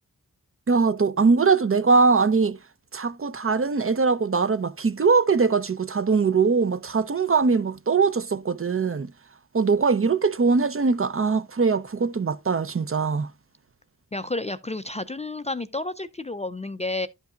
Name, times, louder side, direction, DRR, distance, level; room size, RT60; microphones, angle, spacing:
voice 1, 0.7-2.6 2.9-9.1 9.5-13.3, right 4 dB, 40° right, 0.6 m, -21 dB
voice 2, 14.1-17.1, left 2 dB, 20° left, 0.4 m, -31 dB
11.5 x 5.4 x 2.4 m
wide cardioid pair, 85°, 35 cm